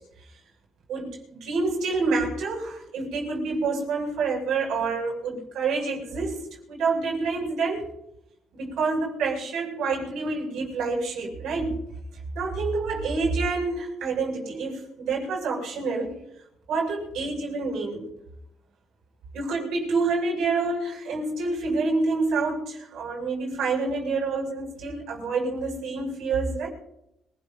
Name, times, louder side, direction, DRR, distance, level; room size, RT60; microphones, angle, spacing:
voice 1, 0.9-6.4 6.7-7.9 8.5-11.8 12.3-16.2 16.7-18.1 19.3-26.7, right 3 dB, 85° right, -2 dB, 6.8 m, -27 dB
26.0 x 19.5 x 2.7 m, 0.84 s
cardioid pair, 90°, 0 cm